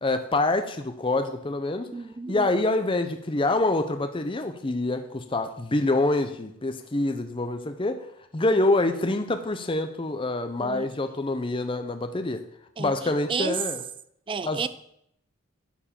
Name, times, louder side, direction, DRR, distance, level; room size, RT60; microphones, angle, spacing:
voice 1, 0.0-1.9 2.3-8.0 8.3-12.4 12.8-13.8 14.4-14.7, left 2 dB, 25° left, 8 dB, 0.6 m, -26 dB
voice 2, 1.9-2.5 10.6-10.9 12.8-13.6 14.3-14.7, right 5 dB, 25° right, 14 dB, 0.3 m, -32 dB
11.0 x 4.6 x 7.4 m, 0.73 s
head